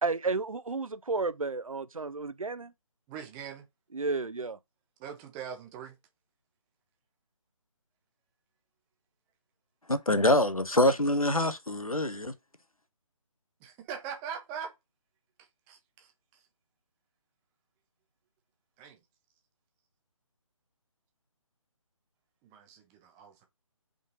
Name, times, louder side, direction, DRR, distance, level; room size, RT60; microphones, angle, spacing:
voice 1, 0.0-2.7 3.9-4.6, right 3 dB, 75° right, 0.7 m, -32 dB
voice 2, 3.1-3.6 5.0-5.9 13.6-14.7 15.7-16.1 18.8-19.0 22.4-23.5, right 7 dB, 5° right, 0.5 m, -41 dB
voice 3, 9.9-12.3, left 1 dB, 90° left, 1.0 m, -25 dB
5.2 x 3.9 x 5.2 m
figure-of-eight pair, 150°, 18 cm